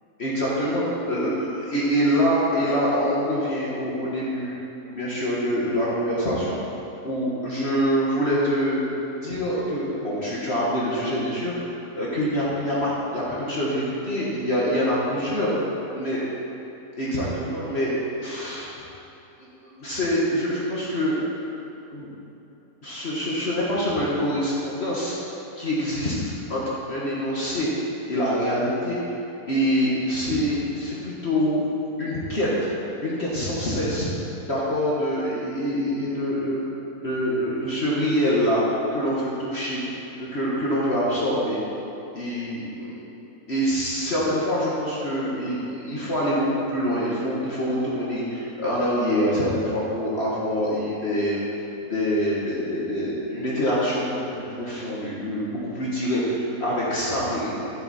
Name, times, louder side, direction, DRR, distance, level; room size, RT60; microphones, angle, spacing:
voice 1, 0.2-4.6 4.9-6.6 7.0-8.9 9.1-15.5 15.9-16.2 17.0-17.9 18.2-18.7 19.6-21.2 21.9-22.1 22.8-25.2 25.6-27.7 28.1-29.0 29.5-31.6 32.0-32.7 33.0-34.1 34.4-36.6 37.0-38.6 38.9-39.8 40.2-41.6 42.1-42.9 43.5-51.4 51.8-57.7, equal, 45° left, -7 dB, 1.7 m, -25 dB
13.5 x 7.6 x 4.3 m, 2.9 s
omnidirectional pair, 1.7 m